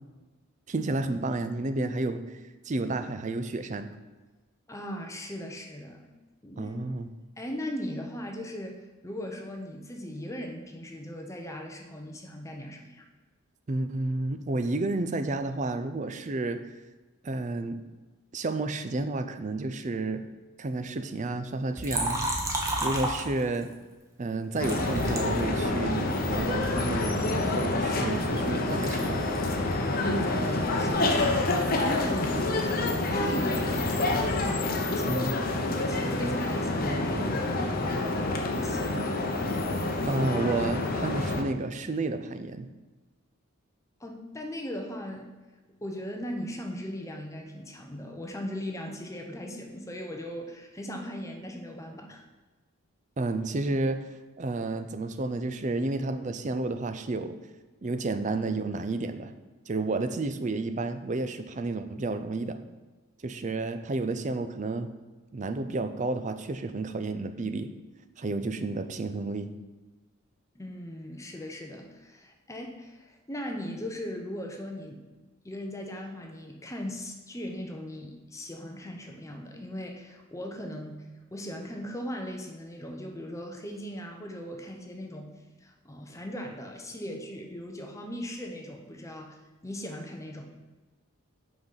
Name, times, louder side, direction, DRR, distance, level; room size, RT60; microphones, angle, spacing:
voice 1, 0.7-2.4 2.6-3.9 6.6-7.1 13.7-16.6 17.2-17.8 18.3-20.2 20.6-22.2 22.8-23.7 24.2-29.2 35.0-35.4 40.0-42.7 53.2-54.1 54.4-57.4 57.8-59.3 59.7-62.6 63.2-64.9 65.3-67.7 68.2-69.5, right 2 dB, 35° right, 9 dB, 0.4 m, -31 dB
voice 2, 4.7-6.1 6.4-6.8 7.4-13.1 29.9-31.2 31.7-32.5 33.1-34.0 34.4-39.5 44.0-45.3 45.8-52.3 70.5-75.0 75.4-85.3 85.6-90.5, equal, 15° left, 2 dB, 0.7 m, -38 dB
Liquid, 21.8-23.7 24.6-26.1 26.7-28.4 28.7-32.4 32.7-34.3, right 1 dB, 15° right, 1.0 m, -35 dB
sound 1, 24.6-41.4, left 2 dB, 40° left, 0.8 m, -28 dB
6.0 x 5.2 x 5.6 m, 1.2 s
head